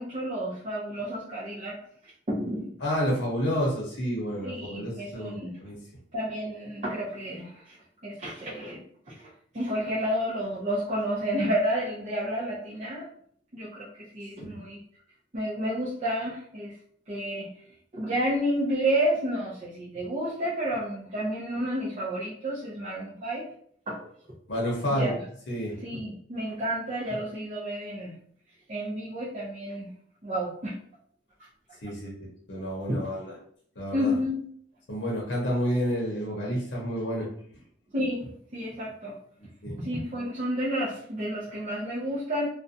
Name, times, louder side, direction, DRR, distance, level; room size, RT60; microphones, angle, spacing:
voice 1, 0.0-1.8 2.0-2.8 4.4-5.6 6.1-7.8 8.0-13.1 13.5-14.8 15.3-16.7 17.1-17.5 17.9-23.4 23.9-24.1 25.0-25.1 25.8-28.1 28.7-29.9 30.2-30.8 32.9-33.0 33.9-34.4 37.9-39.1 39.8-42.5, equal, 35° right, -8 dB, 0.5 m, -30 dB
voice 2, 2.8-5.8 14.5-14.6 24.5-25.1 25.5-25.8 31.8-32.1 32.5-33.3 33.8-34.1 34.9-37.3 39.6-39.7, equal, 70° left, -3 dB, 0.7 m, -29 dB
2.4 x 2.1 x 2.6 m, 0.62 s
head